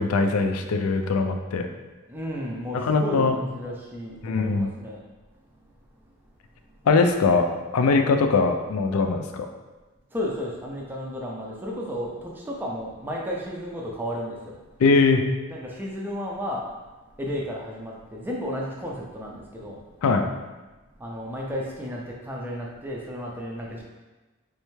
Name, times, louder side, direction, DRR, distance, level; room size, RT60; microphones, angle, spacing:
voice 1, 0.0-1.7 2.7-3.4 4.2-4.7 6.9-9.5 14.8-15.2 20.0-20.3, left 4 dB, 90° left, 6 dB, 0.4 m, -21 dB
voice 2, 2.1-5.0 10.1-14.6 15.5-16.8 17.2-19.8 21.0-23.8, equal, 10° right, -3 dB, 0.4 m, -33 dB
3.4 x 3.2 x 3.1 m, 1.2 s
head